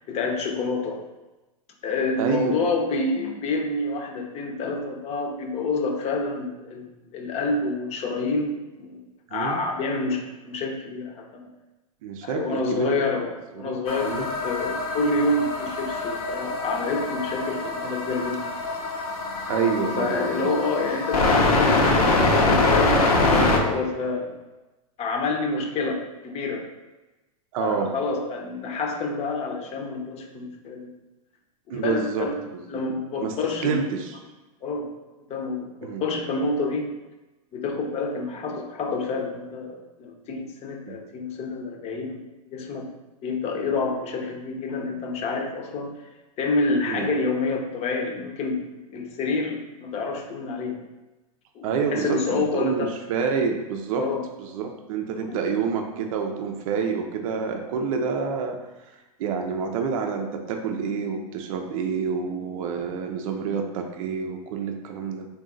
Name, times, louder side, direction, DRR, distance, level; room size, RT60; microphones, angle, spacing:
voice 1, 0.1-1.0 1.8-9.1 9.3-11.5 12.2-18.5 19.8-24.4 25.0-26.7 27.6-30.9 31.7-32.3 32.7-33.8 34.6-34.9 35.3-37.0 37.5-42.9 43.2-45.9 46.4-48.6 48.9-50.8 51.5-52.9 54.0-54.3 55.1-55.4, left 3 dB, 35° left, 2 dB, 0.7 m, -28 dB
voice 2, 2.2-2.7 9.3-9.6 12.0-13.1 13.6-13.8 14.0-14.3 19.5-20.6 27.5-27.9 31.7-32.8 33.2-34.2 35.8-36.0 40.9-41.0 46.9-47.1 51.6-54.1 54.4-58.6 59.2-65.3, right 6 dB, 65° right, 4 dB, 0.5 m, -28 dB
sound 1, 13.9-23.6, left 2 dB, 75° left, 0.7 m, -24 dB
3.8 x 2.3 x 3.8 m, 1.1 s
hypercardioid pair, 110°, 19 cm